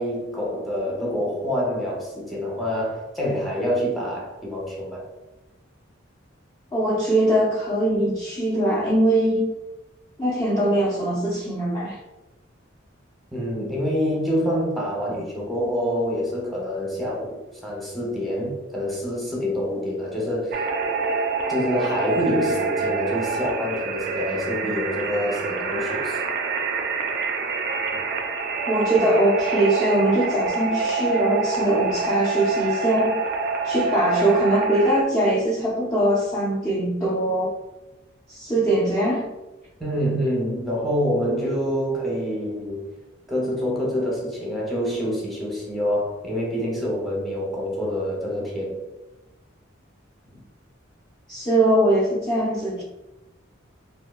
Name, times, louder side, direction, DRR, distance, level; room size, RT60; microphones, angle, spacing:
voice 1, 0.0-5.0 13.3-20.6 21.5-26.2 39.8-42.9 43.3-48.8, equal, ahead, -4 dB, 0.8 m, -26 dB
voice 2, 6.7-9.5 10.2-12.0 28.7-33.2 33.6-37.5 38.3-39.3 51.3-52.8, right 1 dB, 20° left, -7 dB, 0.4 m, -21 dB
sound 1, 20.5-35.0, right 4 dB, 50° right, 0.3 m, -26 dB
3.6 x 2.4 x 2.3 m, 1.0 s
head